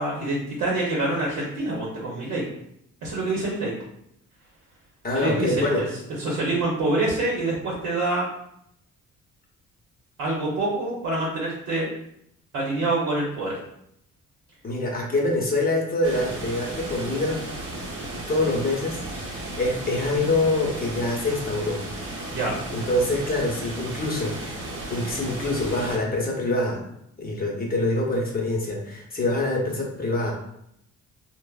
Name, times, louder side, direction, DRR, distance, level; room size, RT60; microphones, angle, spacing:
voice 1, 0.0-2.4 3.0-3.7 5.1-5.9 6.2-8.2 10.2-11.9 12.5-13.5 22.3-22.5, right 2 dB, 90° right, -4 dB, 0.8 m, -26 dB
voice 2, 5.0-5.9 14.6-17.4 18.1-21.8 22.7-24.6 24.9-26.8 27.2-30.3, left 2 dB, 30° left, -1 dB, 0.7 m, -25 dB
sound 1, 16.0-26.0, right 1 dB, 40° right, 0.8 m, -35 dB
3.2 x 2.0 x 2.3 m, 0.76 s
cardioid pair, 90°, 30 cm